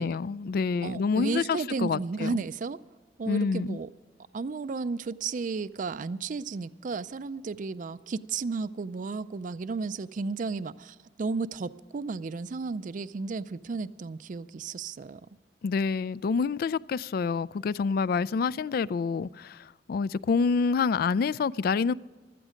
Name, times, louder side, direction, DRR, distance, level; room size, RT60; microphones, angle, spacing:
voice 1, 0.0-2.4 3.3-3.8 15.6-21.9, left 5 dB, 55° left, 0.3 m, -27 dB
voice 2, 0.8-2.8 3.2-3.9 4.3-15.2, right 4 dB, 50° right, 0.4 m, -33 dB
15.0 x 13.0 x 5.1 m
head